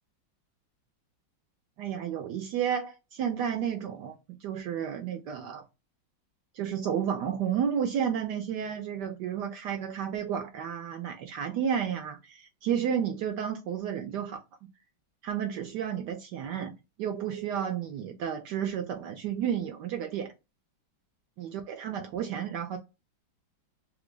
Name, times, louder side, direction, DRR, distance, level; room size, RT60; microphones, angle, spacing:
voice 1, 1.8-5.6 6.5-14.4 15.2-16.7 17.0-20.3 21.4-22.8, right 8 dB, 75° right, 1.0 m, -32 dB
3.2 x 2.4 x 3.4 m
omnidirectional pair, 2.2 m